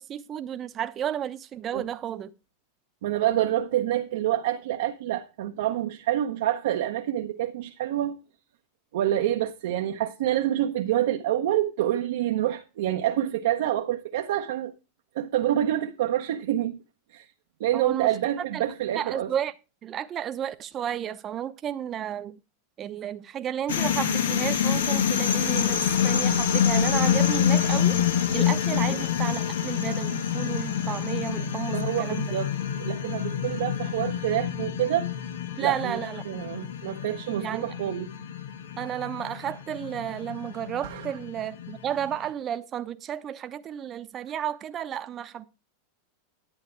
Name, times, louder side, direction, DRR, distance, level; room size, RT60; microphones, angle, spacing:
voice 1, 0.0-2.3 17.7-18.1 18.5-18.6 18.9-19.5 19.8-22.4 22.8-28.0 28.3-32.3 35.6-36.4 37.4-37.8 38.8-45.5, right 10 dB, 35° right, 0.8 m, -32 dB
voice 2, 3.0-8.2 8.9-14.7 15.1-16.8 17.1-17.3 17.6-19.3 31.7-32.5 32.8-35.1 35.6-36.0 36.3-38.1 40.8-41.1, right 12 dB, 75° right, 0.9 m, -27 dB
sound 1, 23.7-42.2, left 9 dB, 85° left, 1.3 m, -27 dB
11.0 x 8.4 x 4.5 m
hypercardioid pair, 115°, 0 cm